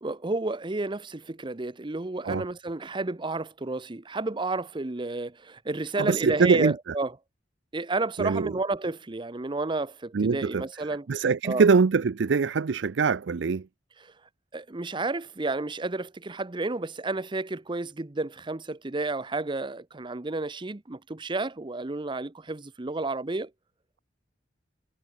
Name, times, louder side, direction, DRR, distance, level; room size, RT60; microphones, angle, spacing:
voice 1, 0.0-7.1 7.7-11.1 11.4-11.7 14.0-14.1 14.5-23.5, right 2 dB, 25° right, 0.7 m, -31 dB
voice 2, 6.0-6.7 8.2-8.5 10.1-13.7, right 5 dB, 70° right, 0.5 m, -23 dB
head